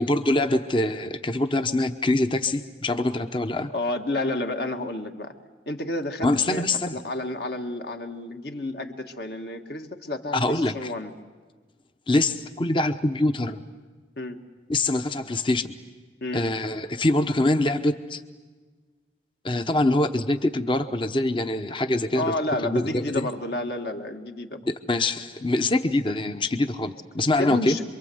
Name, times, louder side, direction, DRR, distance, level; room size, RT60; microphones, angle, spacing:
voice 1, 0.0-3.7 6.2-6.9 10.3-10.9 12.1-13.6 14.7-15.6 16.3-18.2 19.4-22.3 22.6-23.3 24.7-27.8, left 2 dB, 25° left, 8 dB, 0.9 m, -24 dB
voice 2, 3.7-5.3 5.7-6.6 6.9-11.1 14.2-14.4 16.2-16.5 22.1-24.6 27.4-27.8, left 2 dB, 60° left, 4 dB, 1.8 m, -30 dB
27.0 x 23.5 x 7.9 m, 1.4 s
head